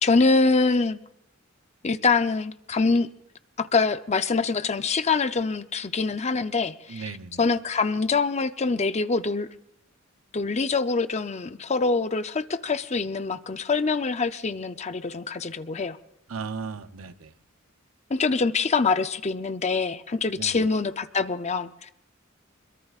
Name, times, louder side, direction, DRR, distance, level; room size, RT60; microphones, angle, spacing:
voice 1, 0.0-1.0 1.8-3.1 3.6-7.1 7.4-9.5 10.3-16.0 18.1-21.9, left 4 dB, 35° left, 0.6 m, -24 dB
voice 2, 6.9-7.4 16.3-17.3 20.4-20.7, right 5 dB, 80° right, 0.7 m, -36 dB
25.5 x 22.5 x 2.4 m
head